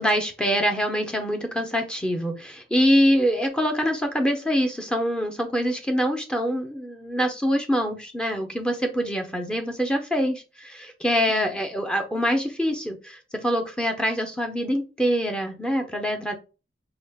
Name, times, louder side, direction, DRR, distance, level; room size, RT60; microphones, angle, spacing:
voice 1, 0.0-16.3, equal, 5° left, 3 dB, 0.6 m, -24 dB
4.8 x 2.4 x 3.5 m, 0.31 s
head